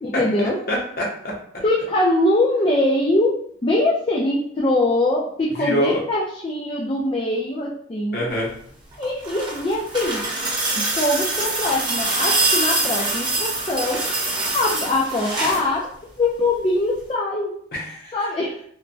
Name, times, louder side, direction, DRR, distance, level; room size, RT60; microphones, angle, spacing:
voice 1, 0.0-0.6 1.6-3.4 3.6-8.3 9.0-10.3 10.7-14.0 14.5-15.9 16.2-17.6 18.1-18.6, left 1 dB, 30° left, -3 dB, 0.4 m, -22 dB
voice 2, 0.7-1.3 5.6-6.0 8.1-8.6 17.7-18.2, left 1 dB, 55° left, -3 dB, 0.9 m, -25 dB
sound 1, 8.9-15.7 17.0-17.1, right 2 dB, 25° right, 0.7 m, -24 dB
3.1 x 2.1 x 2.6 m, 0.64 s
head